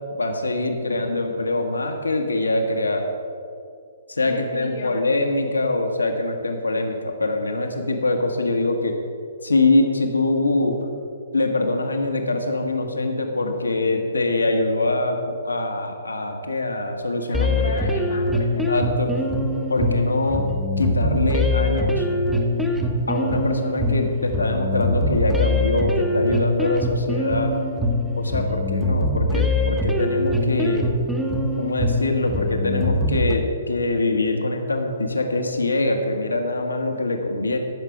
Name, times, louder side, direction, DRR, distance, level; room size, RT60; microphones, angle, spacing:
voice 1, 0.2-3.1 4.1-9.0 9.4-10.8 11.3-17.6 18.7-19.1 19.7-20.5 20.8-22.1 23.1-27.5 28.2-30.9 31.6-37.6, left 2 dB, 85° left, 4 dB, 1.4 m, -23 dB
voice 2, 4.3-5.1 17.4-18.7, left 4 dB, 65° left, 1 dB, 1.1 m, -34 dB
sound 1, 17.3-33.3, left 1 dB, 5° right, 0.9 m, -23 dB
14.0 x 6.0 x 5.9 m, 2.4 s
figure-of-eight pair, 130°, 0 cm